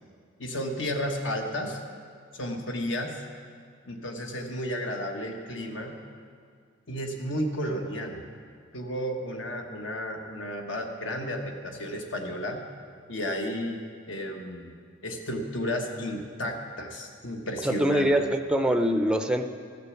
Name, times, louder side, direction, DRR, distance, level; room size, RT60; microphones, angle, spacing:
voice 1, 0.4-1.8 2.4-3.2 3.9-5.9 6.9-8.2 8.7-12.6 13.1-13.8 14.1-14.7 15.0-18.1, equal, 70° left, 3 dB, 1.3 m, -32 dB
voice 2, 17.6-19.5, equal, 5° right, 6 dB, 0.4 m, -24 dB
14.5 x 6.7 x 7.1 m, 2.1 s
head